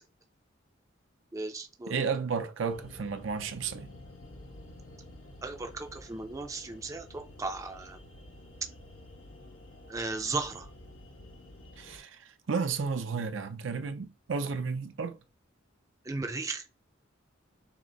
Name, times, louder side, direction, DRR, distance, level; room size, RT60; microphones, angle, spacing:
voice 1, 1.3-1.9 5.4-8.0 9.9-10.7 16.1-16.6, right 3 dB, 15° right, 0.4 m, -36 dB
voice 2, 1.9-3.9 11.8-15.2, right 5 dB, 70° right, 0.6 m, -33 dB
sound 1, 2.7-12.0, left 1 dB, 90° left, 1.3 m, -50 dB
6.0 x 2.0 x 3.9 m
head